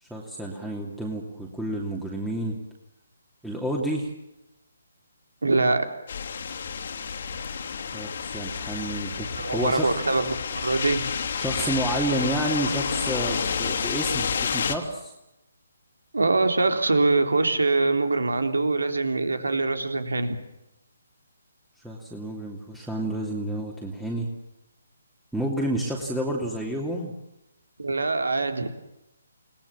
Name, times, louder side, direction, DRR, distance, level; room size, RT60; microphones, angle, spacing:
voice 1, 0.0-2.6 3.4-4.1 7.9-9.9 11.4-15.1 21.8-24.3 25.3-27.1, right 1 dB, ahead, -3 dB, 2.8 m, -30 dB
voice 2, 5.4-5.9 9.3-11.1 16.1-20.4 27.8-28.7, right 3 dB, 70° right, 7 dB, 3.6 m, -23 dB
sound 1, 6.1-14.8, left 6 dB, 50° left, 2.9 m, -30 dB
29.5 x 19.5 x 7.5 m, 0.92 s
figure-of-eight pair, 140°, 0 cm